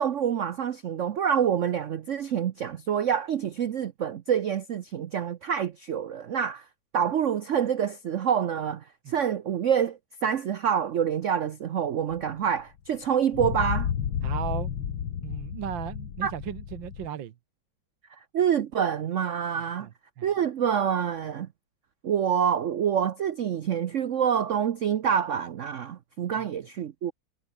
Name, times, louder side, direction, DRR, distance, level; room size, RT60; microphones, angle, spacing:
voice 1, 0.0-6.6 6.9-13.9 16.2-16.3 18.3-19.9 20.2-21.5 22.0-27.1, right 8 dB, 85° right, 0.6 m, -27 dB
sound 1, 12.1-12.2 13.3-17.1, left 8 dB, 75° left, 2.4 m, -31 dB
voice 2, 14.2-14.7 15.2-17.3 19.6-19.9 20.2-20.3 26.4-26.5, right 10 dB, 70° right, 1.7 m, -36 dB
omnidirectional pair, 2.2 m